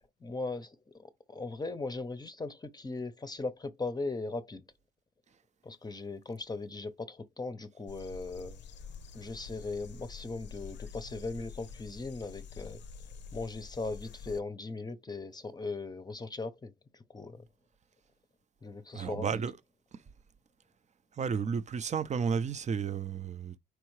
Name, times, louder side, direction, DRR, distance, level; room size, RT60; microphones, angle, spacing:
voice 1, 0.2-4.6 5.6-8.6 9.1-12.8 13.3-17.5 18.6-19.4, left 3 dB, 20° left, 0.7 m, -39 dB
sound 1, 7.9-14.4, left 5 dB, 65° left, 0.6 m, -47 dB
voice 2, 18.9-19.6 19.9-20.0 21.2-23.6, right 6 dB, 35° right, 0.6 m, -32 dB
4.7 x 3.4 x 3.2 m
cardioid pair, 90°, 20 cm